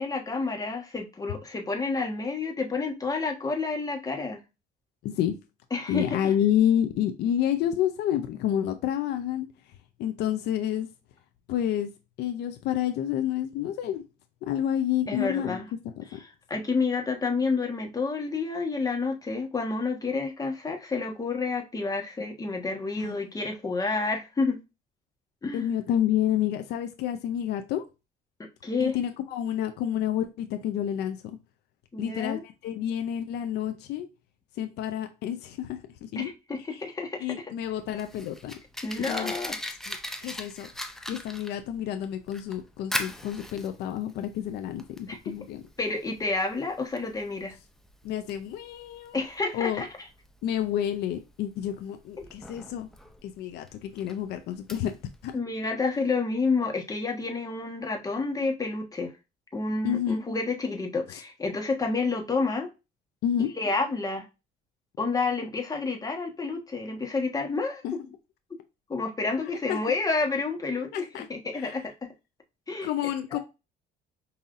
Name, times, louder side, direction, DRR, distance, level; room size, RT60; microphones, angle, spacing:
voice 1, 0.0-4.4 5.7-6.2 15.1-15.7 16.2-24.6 25.4-25.6 28.6-29.0 31.9-32.4 36.1-37.3 38.8-39.6 45.1-45.3 45.8-47.5 49.1-49.9 55.3-59.1 59.5-62.7 63.6-64.3 65.0-68.0 68.9-72.1 72.7-72.9 73.3-73.4, left 3 dB, 20° left, 1.2 m, -29 dB
voice 2, 5.0-5.3 5.9-9.5 10.0-10.9 11.5-11.9 12.2-14.0 14.4-15.6 16.1-16.2 23.0-23.2 25.5-27.9 28.8-31.4 32.0-34.1 34.6-36.3 36.7-36.8 37.2-38.5 39.1-39.3 39.9-40.7 41.1-45.6 48.0-49.2 49.5-49.8 50.4-52.9 53.2-55.0 55.2-55.4 59.8-60.2 61.1-61.2 63.2-63.5 67.8-67.9 69.7-69.8 70.9-71.3 71.5-71.8 72.8-73.4, left 10 dB, 80° left, 0.5 m, -29 dB
Fire, 37.6-55.3, left 1 dB, ahead, 0.6 m, -40 dB
5.5 x 2.7 x 2.4 m
cardioid pair, 110°, 17 cm